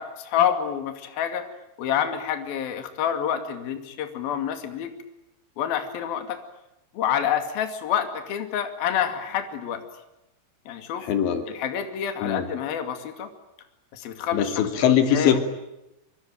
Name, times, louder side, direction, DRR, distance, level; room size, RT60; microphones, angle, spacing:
voice 1, 0.0-1.4 1.8-4.9 5.6-6.4 6.9-9.8 10.7-11.1 11.5-13.3 13.9-14.5 14.8-15.4, left 9 dB, 60° left, 7 dB, 4.0 m, -27 dB
voice 2, 11.0-11.5 12.2-12.5 14.3-15.4, left 9 dB, 75° left, 7 dB, 4.8 m, -21 dB
26.0 x 25.5 x 9.2 m, 0.90 s
omnidirectional pair, 5.2 m